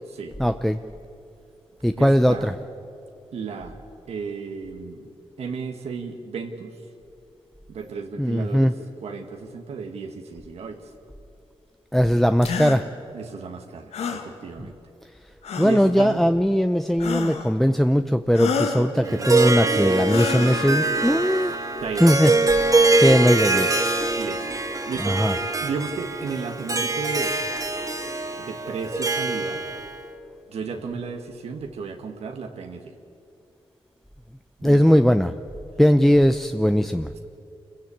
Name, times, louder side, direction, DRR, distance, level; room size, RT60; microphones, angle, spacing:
voice 1, 0.4-0.8 1.8-2.5 8.2-8.7 11.9-12.9 15.6-21.6 22.0-22.3 22.7-23.7 25.0-25.3 34.6-35.3 35.8-37.1, equal, 5° left, 9 dB, 0.6 m, -19 dB
voice 2, 2.0-2.5 3.3-3.8 4.1-5.1 5.4-6.7 7.7-8.7 9.0-10.9 13.1-14.8 15.6-16.2 18.7-19.3 21.8-22.2 24.2-24.5 24.9-27.4 28.4-29.6 30.5-32.9 34.6-35.0, right 5 dB, 80° right, 4 dB, 1.6 m, -34 dB
sound 1, 12.4-12.8 13.9-14.3 15.4-15.9 17.0-17.5 18.3-18.9 20.0-20.7, left 6 dB, 90° left, 1.7 m, -28 dB
Harp, 19.1-30.0, right 2 dB, 35° right, 1.9 m, -23 dB
26.5 x 15.5 x 8.6 m, 2.7 s
cardioid pair, 70°, 10 cm